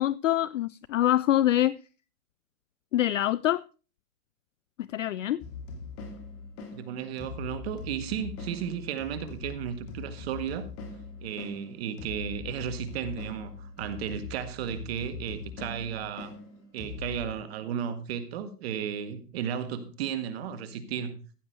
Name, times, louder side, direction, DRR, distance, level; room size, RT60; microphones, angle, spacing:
voice 1, 0.0-1.8 2.9-3.6 4.8-5.4, left 13 dB, 55° left, 0.5 m, -25 dB
sound 1, 5.4-17.3, left 4 dB, 30° left, 2.5 m, -41 dB
voice 2, 6.7-10.7 11.2-16.3 16.7-21.2, right 8 dB, 40° right, 1.7 m, -34 dB
15.0 x 7.4 x 4.5 m
hypercardioid pair, 145°, 46 cm